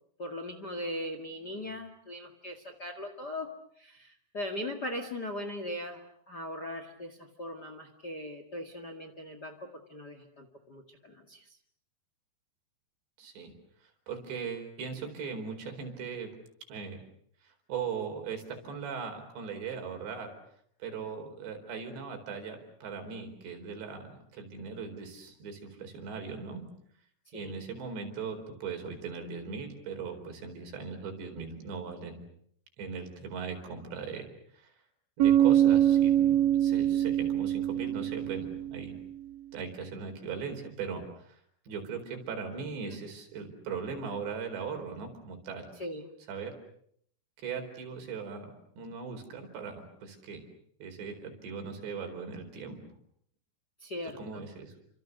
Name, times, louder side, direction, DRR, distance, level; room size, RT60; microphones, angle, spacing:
voice 1, 0.2-3.5 3.8-9.5 9.9-11.4 27.3-27.5 45.8-46.1 53.8-54.5, left 1 dB, 35° left, 7 dB, 1.7 m, -39 dB
voice 2, 13.2-13.5 13.8-16.3 16.7-17.0 17.4-20.3 20.8-26.6 27.3-32.2 32.8-34.3 34.5-34.7 35.2-39.0 39.5-41.4 41.7-45.7 46.3-46.5 47.4-50.4 50.8-52.9 54.0-54.7, right 5 dB, 85° right, 5 dB, 6.6 m, -39 dB
Bass guitar, 35.2-39.0, right 11 dB, 60° right, 2.9 m, -24 dB
30.0 x 26.0 x 6.7 m, 0.66 s
omnidirectional pair, 4.9 m